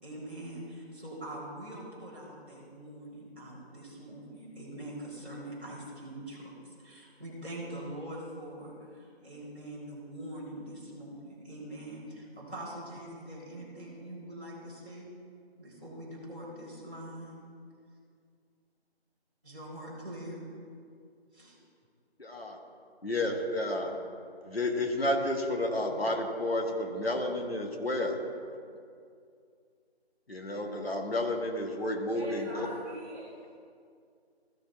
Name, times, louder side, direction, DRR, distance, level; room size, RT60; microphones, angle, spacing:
voice 1, 0.0-15.1 15.6-17.4 19.4-20.5 21.3-21.6, right 1 dB, 10° right, -17 dB, 2.1 m, -43 dB
voice 2, 22.2-22.6 23.0-24.0 24.4-28.2 28.5-28.6 30.3-32.7, left 1 dB, 65° left, 2 dB, 1.5 m, -31 dB
voice 3, 32.0-33.5, right 1 dB, 10° left, -15 dB, 1.9 m, -43 dB
14.5 x 5.8 x 4.1 m, 2.3 s
figure-of-eight pair, 165°, 32 cm